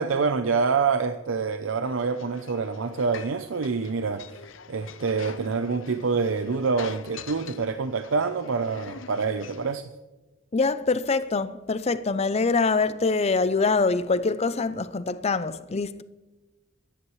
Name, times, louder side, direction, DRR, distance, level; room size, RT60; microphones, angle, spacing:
voice 1, 0.0-4.2 4.7-9.9, right 5 dB, 85° right, 0.6 m, -26 dB
sound 1, 1.8-9.8, left 6 dB, 75° left, 0.7 m, -45 dB
voice 2, 10.5-16.0, left 4 dB, 30° left, 0.5 m, -24 dB
23.5 x 10.0 x 3.2 m
head